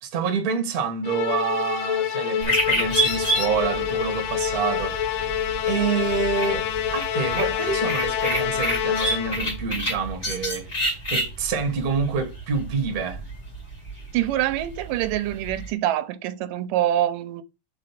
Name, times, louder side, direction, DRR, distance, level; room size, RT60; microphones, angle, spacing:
voice 1, 0.0-6.6 6.9-13.2, right 5 dB, 40° right, 1.3 m, -27 dB
Musical instrument, 1.0-9.6, left 10 dB, 80° left, 1.4 m, -27 dB
sound 1, 2.4-15.7, right 1 dB, 25° left, 2.2 m, -30 dB
voice 2, 14.1-17.4, right 13 dB, 90° right, 2.3 m, -25 dB
5.5 x 5.0 x 5.8 m
omnidirectional pair, 3.7 m